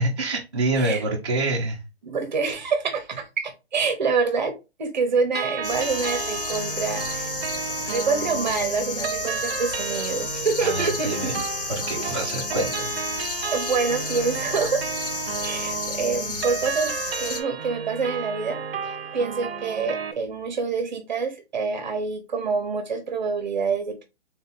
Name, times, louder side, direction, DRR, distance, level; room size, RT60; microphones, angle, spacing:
voice 1, 0.0-1.8 10.6-11.4 11.7-12.9, right 2 dB, 25° right, -5 dB, 0.5 m, -26 dB
voice 2, 0.8-1.1 2.0-7.3 7.7-11.4 12.0-12.4 13.5-14.8 15.4-24.0, right 4 dB, 45° right, 8 dB, 0.9 m, -27 dB
sound 1, 5.3-20.1, right 6 dB, 65° right, 0.7 m, -32 dB
sound 2, 5.6-17.4, left 4 dB, 55° left, 0.8 m, -32 dB
3.8 x 2.8 x 4.0 m, 0.26 s
hypercardioid pair, 175°, 32 cm